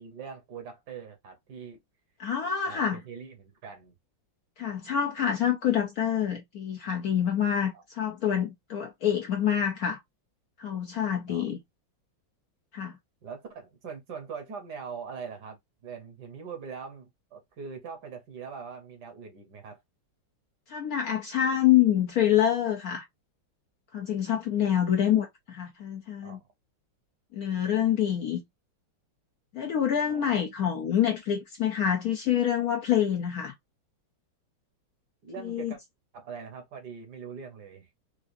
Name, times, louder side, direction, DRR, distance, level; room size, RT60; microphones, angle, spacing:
voice 1, 0.0-1.8 2.7-4.0 7.7-7.8 11.3-11.4 13.2-15.6 15.8-19.8 26.2-26.5 30.1-30.4 35.2-35.8 36.1-37.9, right 6 dB, 60° right, 1.4 m, -42 dB
voice 2, 2.2-3.0 4.6-10.0 10.6-11.6 12.7-12.9 20.7-23.0 23.9-26.4 27.3-28.4 29.5-33.5 35.4-35.7, left 10 dB, 70° left, 0.9 m, -26 dB
4.7 x 2.4 x 2.5 m
omnidirectional pair, 2.1 m